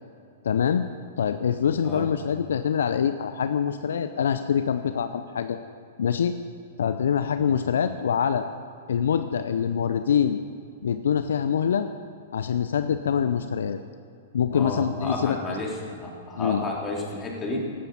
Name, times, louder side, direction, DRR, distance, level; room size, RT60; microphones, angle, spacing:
voice 1, 0.4-0.9 1.2-5.6 6.0-6.3 6.8-8.5 8.9-10.4 10.8-11.9 12.3-13.8 14.3-15.4 16.4-16.6, left 7 dB, 70° left, 10 dB, 0.6 m, -24 dB
voice 2, 14.5-17.7, left 2 dB, 20° left, -1 dB, 3.5 m, -32 dB
16.5 x 12.5 x 5.5 m, 2.4 s
hypercardioid pair, 110°, 0 cm